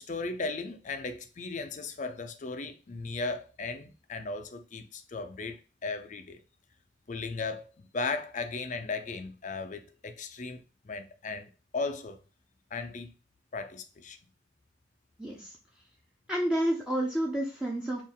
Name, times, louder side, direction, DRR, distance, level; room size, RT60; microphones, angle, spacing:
voice 1, 0.0-6.4 7.1-7.7 7.9-10.6 10.8-12.2 12.7-13.1 13.5-14.2, left 3 dB, 40° left, 0.5 m, -36 dB
voice 2, 15.2-15.5 16.3-18.0, right 1 dB, 5° right, 0.7 m, -29 dB
4.3 x 2.6 x 3.6 m
head